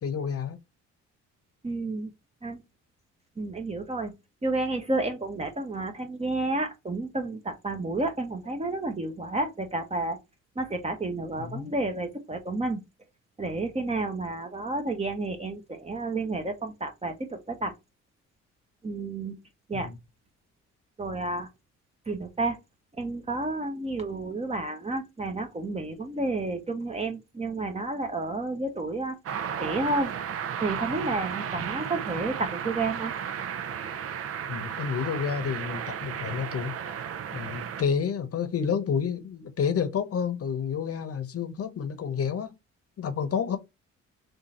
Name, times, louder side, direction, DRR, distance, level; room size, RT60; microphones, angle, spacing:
voice 1, 0.0-0.6 11.4-11.7 19.7-19.9 31.6-31.7 34.5-36.7 37.3-42.6 43.0-43.6, left 7 dB, 50° left, 0.9 m, -30 dB
voice 2, 1.6-2.1 2.4-2.6 3.4-4.1 4.4-10.2 10.6-12.8 13.4-17.7 18.8-19.4 19.7-19.9 21.0-21.5 22.1-22.6 23.0-29.2 29.6-30.1 30.6-33.1, right 2 dB, 20° right, 0.9 m, -31 dB
sound 1, 29.3-37.8, right 8 dB, 50° right, 0.5 m, -34 dB
3.7 x 2.6 x 4.1 m
cardioid pair, 90°, 30 cm